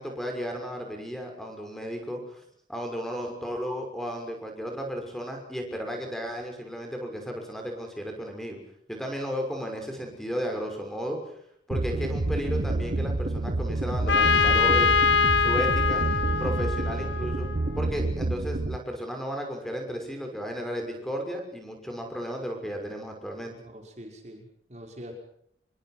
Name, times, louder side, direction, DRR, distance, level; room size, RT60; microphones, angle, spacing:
voice 1, 0.0-2.4 2.7-8.6 8.9-11.2 11.7-14.9 15.4-16.0 16.4-17.5 17.8-23.5, equal, ahead, 3 dB, 6.1 m, -34 dB
sound 1, 11.7-18.8, right 2 dB, 55° right, 1.0 m, -28 dB
Trumpet, 14.1-17.8, left 5 dB, 85° left, 1.9 m, -24 dB
voice 2, 23.5-25.1, equal, 40° right, 2 dB, 5.6 m, -44 dB
27.5 x 23.5 x 6.1 m, 0.69 s
head